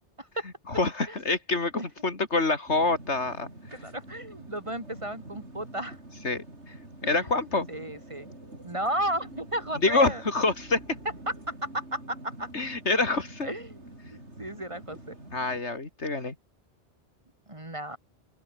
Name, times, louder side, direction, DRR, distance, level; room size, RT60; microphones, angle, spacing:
voice 1, 0.7-3.5 6.2-6.7 7.0-7.7 9.8-10.8 12.5-13.5 15.3-16.4, left 3 dB, 85° left, 3.5 m, -26 dB
sound 1, 2.7-15.6, right 1 dB, 85° right, 7.3 m, -46 dB
voice 2, 3.7-6.0 7.0-7.3 7.7-8.3 8.6-10.2 11.3-12.5 13.4-13.8 14.1-15.1 17.5-18.0, right 1 dB, 25° right, 3.3 m, -34 dB
open air
omnidirectional pair, 1.1 m